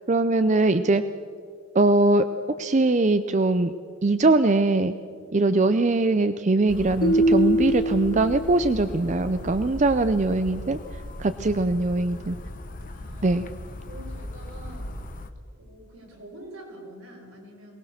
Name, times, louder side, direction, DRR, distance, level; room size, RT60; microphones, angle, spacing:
voice 1, 0.1-1.0 1.7-2.3 2.6-3.7 4.0-4.9 5.3-10.8 11.2-12.4 13.2-13.5, right 2 dB, 35° right, 11 dB, 0.5 m, -21 dB
sound 1, 6.7-15.3, left 1 dB, 40° left, 1.1 m, -38 dB
sound 2, 7.0-9.2, equal, 75° left, 3.0 m, -24 dB
voice 2, 12.9-13.5 13.9-14.9 15.6-17.8, right 1 dB, 75° right, -1 dB, 5.9 m, -45 dB
23.0 x 19.0 x 6.6 m, 2.1 s
head